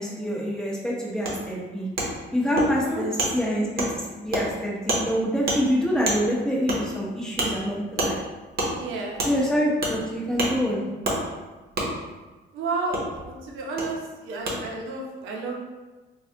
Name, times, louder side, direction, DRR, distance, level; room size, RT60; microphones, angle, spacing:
voice 1, 0.0-1.9 2.3-8.2 9.3-10.8, equal, 5° left, -5 dB, 0.8 m, -26 dB
Wood, 1.3-1.4 2.0-2.1 2.6-2.7 3.2-3.3 3.8-3.9 4.3-4.4 4.9-5.0 5.5-5.6 6.1-6.2 6.7-6.8 7.4-7.5 8.0-8.1 8.6-8.7 9.2-9.3 9.8-10.0 10.4-10.5 11.0-11.2 11.8-11.9 12.9-13.0 13.8-13.9 14.5-14.6, right 2 dB, 50° right, 0.8 m, -25 dB
voice 2, 2.6-3.1 8.7-9.2 12.5-13.0 13.3-15.5, right 3 dB, 90° right, -1 dB, 0.7 m, -31 dB
3.3 x 2.3 x 2.7 m, 1.2 s
cardioid pair, 90°, 20 cm